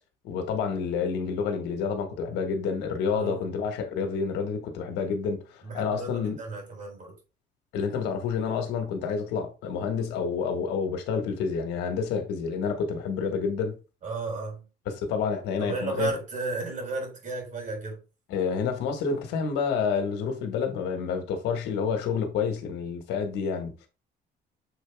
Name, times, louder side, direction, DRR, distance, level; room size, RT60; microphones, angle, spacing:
voice 1, 0.2-6.4 7.7-13.8 14.9-16.1 18.3-23.9, left 6 dB, 85° left, 1.5 m, -29 dB
voice 2, 5.6-7.1 14.0-14.6 15.6-18.0, right 3 dB, 50° right, 3.9 m, -33 dB
6.9 x 3.9 x 3.5 m
cardioid pair, 110°, 17 cm